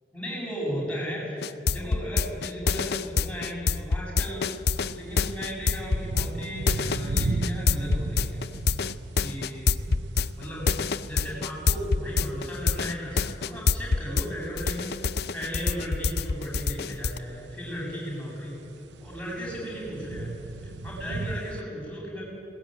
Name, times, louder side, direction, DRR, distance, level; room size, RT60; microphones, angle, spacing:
voice 1, 0.1-8.5 9.2-9.8 10.4-10.7 11.1-18.6 19.0-22.2, equal, 5° left, -5 dB, 7.6 m, -36 dB
sound 1, 1.4-14.3 14.6-17.2, left 4 dB, 60° left, 0.6 m, -26 dB
sound 2, 4.7-21.6, right 2 dB, 80° right, 0.8 m, -38 dB
21.0 x 19.0 x 9.2 m, 2.9 s
head